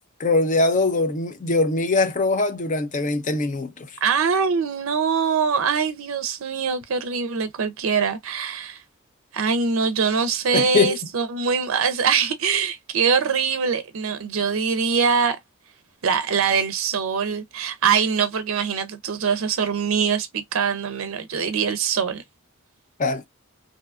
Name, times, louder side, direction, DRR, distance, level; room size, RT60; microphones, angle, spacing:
voice 1, 0.2-3.9 10.5-11.0 23.0-23.2, left 3 dB, 35° left, 0.5 m, -22 dB
voice 2, 4.0-8.8 9.3-15.4 16.0-22.2, right 6 dB, 70° right, 0.5 m, -23 dB
2.6 x 2.3 x 2.4 m
head